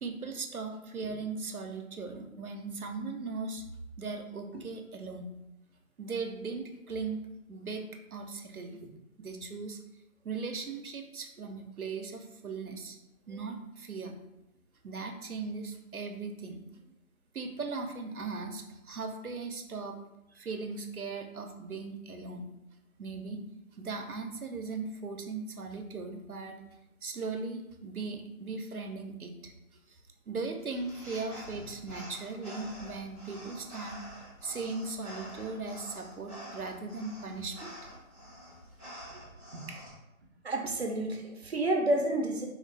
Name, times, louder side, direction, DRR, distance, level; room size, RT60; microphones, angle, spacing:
voice 1, 0.0-3.6 4.0-5.3 6.0-7.2 7.5-7.8 8.1-8.8 9.2-9.8 10.2-13.0 13.3-14.1 14.8-16.8 17.3-20.0 20.4-22.5 23.0-23.4 23.7-26.6 27.0-29.5 29.9-30.0 30.3-34.0 34.4-37.7, right 4 dB, 90° right, 5 dB, 0.9 m, -38 dB
sound 1, 30.6-39.9, equal, 10° left, 0.8 m, -47 dB
voice 2, 39.5-39.9 40.4-42.5, right 1 dB, 50° right, 2 dB, 0.9 m, -30 dB
4.4 x 3.2 x 3.3 m, 0.91 s
figure-of-eight pair, 155°, 42 cm